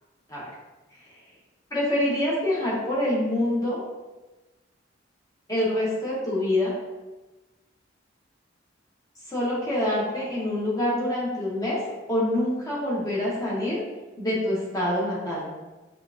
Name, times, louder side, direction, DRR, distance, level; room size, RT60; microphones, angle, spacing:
voice 1, 1.7-3.8 5.5-6.7 9.3-11.8 12.1-13.8 14.2-15.5, left 1 dB, 20° left, -7 dB, 1.1 m, -26 dB
5.4 x 2.5 x 2.5 m, 1.2 s
head